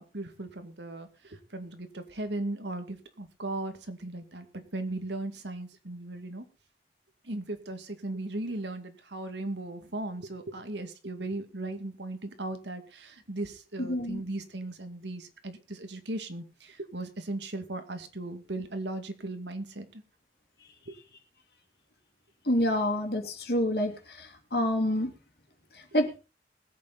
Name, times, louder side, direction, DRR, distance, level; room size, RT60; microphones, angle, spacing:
voice 1, 0.0-6.5 7.2-20.0 20.9-21.0, right 2 dB, 80° right, 7 dB, 2.2 m, -37 dB
voice 2, 13.8-14.2 22.5-25.1 25.9-26.1, left 1 dB, 60° left, 4 dB, 2.9 m, -27 dB
21.0 x 8.7 x 4.0 m, 0.33 s
head